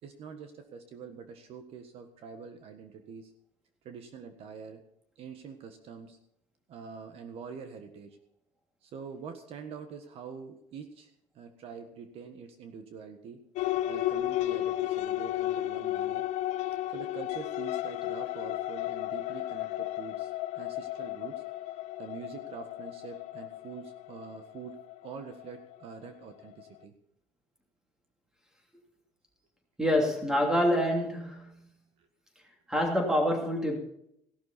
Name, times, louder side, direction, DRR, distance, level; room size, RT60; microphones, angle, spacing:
voice 1, 0.0-3.3 3.8-4.8 5.2-6.2 6.7-8.2 8.8-13.4 13.9-16.2 16.9-21.4 22.0-26.9, right 6 dB, 50° right, 7 dB, 1.6 m, -45 dB
sound 1, 13.6-25.5, left 14 dB, 65° left, 0.7 m, -33 dB
voice 2, 29.8-31.7 32.7-33.8, equal, 5° right, 2 dB, 2.9 m, -26 dB
16.5 x 12.0 x 4.3 m, 0.73 s
cardioid pair, 175°, 12 cm